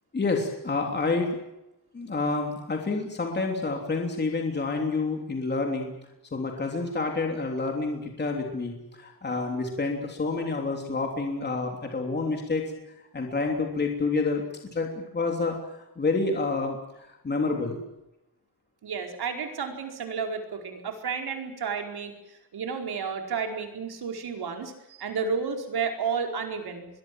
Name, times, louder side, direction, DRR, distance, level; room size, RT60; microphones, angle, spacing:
voice 1, 0.1-1.4 1.9-5.9 6.3-12.7 13.1-14.4 14.7-15.6 16.0-16.8 17.1-17.8, left 3 dB, 25° left, 2 dB, 3.2 m, -28 dB
voice 2, 18.8-22.1 22.5-24.7 25.0-26.9, right 5 dB, 70° right, 3 dB, 4.8 m, -31 dB
25.5 x 22.0 x 7.7 m, 0.91 s
wide cardioid pair, 180°, 40 cm